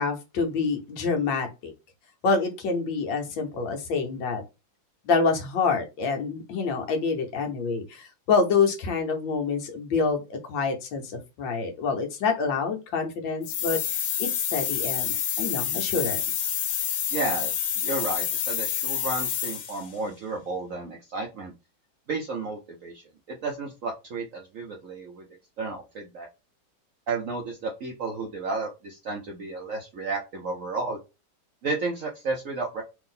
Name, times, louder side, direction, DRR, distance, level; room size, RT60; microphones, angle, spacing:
voice 1, 0.0-1.7 2.2-4.4 5.0-16.5, left 4 dB, 75° left, 3 dB, 1.5 m, -27 dB
sound 1, 13.4-19.9, left 9 dB, 90° left, 1.5 m, -28 dB
voice 2, 17.1-21.5 22.1-25.2 25.6-26.3 27.1-31.0 31.6-32.8, right 3 dB, 65° right, 1 dB, 0.8 m, -32 dB
3.5 x 2.6 x 3.8 m, 0.26 s
omnidirectional pair, 2.1 m